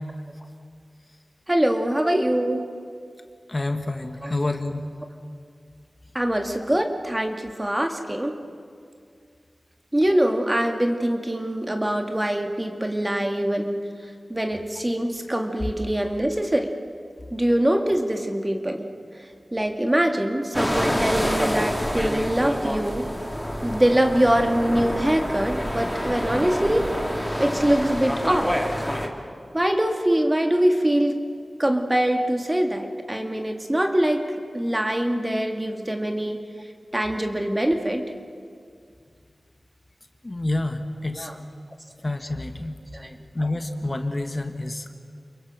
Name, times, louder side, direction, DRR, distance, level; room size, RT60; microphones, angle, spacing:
voice 1, 1.5-2.6 4.2-4.3 6.1-8.4 9.9-13.8 14.3-16.7 17.3-18.9 19.5-23.1 23.6-26.9 27.4-28.5 29.5-31.2 31.6-34.2 34.5-36.4 36.9-38.0 41.1-41.3 42.9-43.1, right 1 dB, 20° right, 4 dB, 2.1 m, -23 dB
voice 2, 3.5-4.9 40.2-41.3 42.0-42.7 43.3-44.9, left 2 dB, 35° left, 6 dB, 1.6 m, -28 dB
sound 1, 20.5-29.1, equal, ahead, 2.8 m, -27 dB
29.5 x 22.0 x 6.2 m, 2.2 s
wide cardioid pair, 50°, 0 cm